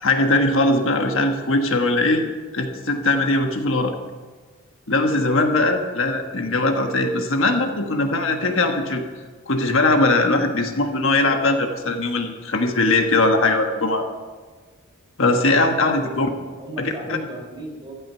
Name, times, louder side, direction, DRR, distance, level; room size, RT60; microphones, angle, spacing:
voice 1, 0.0-2.2 2.5-3.9 4.9-9.0 9.5-14.1 15.2-16.3 16.8-17.2, left 2 dB, 60° left, 4 dB, 1.4 m, -20 dB
voice 2, 15.9-17.9, right 1 dB, 20° right, 0 dB, 3.4 m, -36 dB
15.5 x 12.0 x 5.6 m, 1.4 s
head